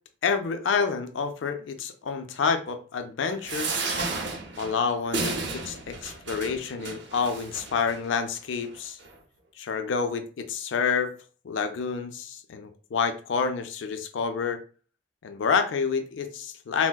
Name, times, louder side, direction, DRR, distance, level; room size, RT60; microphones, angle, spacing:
voice 1, 0.2-3.7 4.6-9.0 9.6-11.1 11.4-14.6 15.2-16.9, left 5 dB, 85° left, 0.4 m, -28 dB
sound 1, 3.4-8.0 8.6-8.7 9.0-9.1, right 3 dB, 70° right, 0.7 m, -33 dB
4.3 x 2.1 x 2.2 m
head